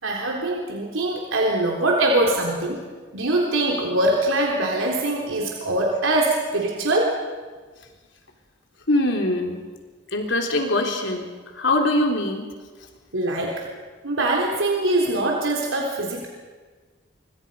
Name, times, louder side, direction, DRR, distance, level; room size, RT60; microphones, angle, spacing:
voice 1, 0.0-2.8 3.1-7.2 13.1-13.6 14.0-16.3, right 2 dB, 90° right, -1 dB, 3.6 m, -23 dB
voice 2, 8.9-9.6 10.1-12.5, left 1 dB, 70° left, 3 dB, 3.5 m, -23 dB
26.0 x 24.5 x 5.5 m, 1.4 s
head